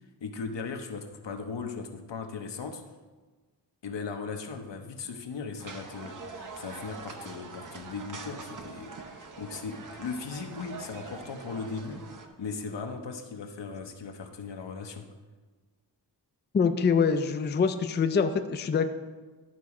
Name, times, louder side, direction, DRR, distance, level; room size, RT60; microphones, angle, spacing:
voice 1, 0.2-2.8 3.8-12.0 12.4-15.1, left 5 dB, 85° left, 5 dB, 0.9 m, -38 dB
sound 1, 5.6-12.3, right 4 dB, 50° right, 0.8 m, -44 dB
voice 2, 16.5-18.9, left 5 dB, 25° left, 8 dB, 0.4 m, -25 dB
11.5 x 4.1 x 4.8 m, 1.3 s
wide cardioid pair, 145°, 42 cm